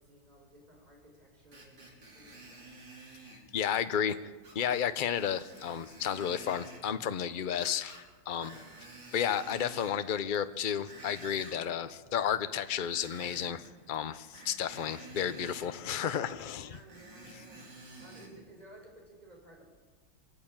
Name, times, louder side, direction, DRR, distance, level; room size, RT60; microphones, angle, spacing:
voice 1, 0.0-2.7 8.3-8.7 16.6-17.6 18.0-19.6, right 1 dB, 20° right, 0 dB, 5.0 m, -56 dB
Screech, 1.5-3.4 4.4-4.8 5.1-6.8 7.5-8.1 8.3-10.0 10.5-11.6 12.7-13.7 14.3-15.7 16.7-18.3 18.9-19.0, right 2 dB, 90° right, 5.0 m, -50 dB
voice 2, 3.3-4.2 4.5-8.5 9.1-16.8, left 8 dB, 60° left, 12 dB, 0.5 m, -32 dB
24.5 x 13.5 x 8.8 m, 1.4 s
omnidirectional pair, 1.9 m